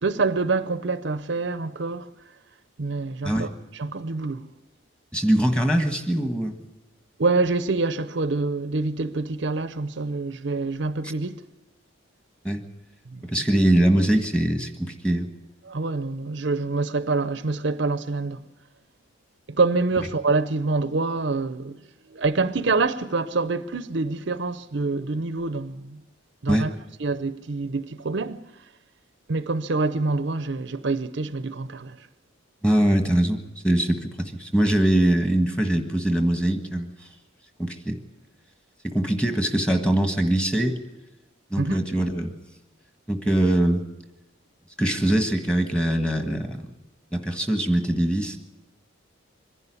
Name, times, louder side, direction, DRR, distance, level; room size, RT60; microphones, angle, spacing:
voice 1, 0.0-2.1 2.8-4.5 7.2-11.3 13.1-13.3 15.6-18.4 19.5-21.8 22.1-26.0 26.4-26.7 27.0-28.4 29.3-32.1 41.6-41.8, right 3 dB, 60° right, 0.6 m, -26 dB
voice 2, 5.1-6.5 12.4-12.6 13.2-15.3 26.5-26.7 32.6-33.4 33.6-36.9 37.6-38.0 38.8-40.8 41.5-42.3 43.1-43.8 44.8-46.7 47.1-48.4, right 1 dB, 5° left, 1.4 m, -22 dB
24.0 x 11.0 x 9.7 m
head